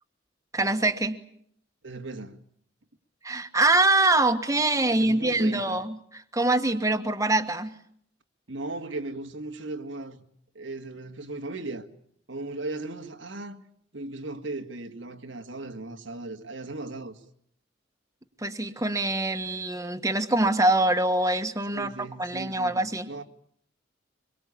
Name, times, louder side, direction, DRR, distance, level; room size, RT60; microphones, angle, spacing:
voice 1, 0.5-1.2 3.2-7.7 18.4-23.1, right 2 dB, 15° right, 1.5 m, -24 dB
voice 2, 1.8-2.4 4.9-5.8 8.5-10.2 10.5-11.9 12.3-13.6 13.9-17.2 21.7-23.2, right 2 dB, 85° right, 2.2 m, -37 dB
25.0 x 23.0 x 8.6 m
head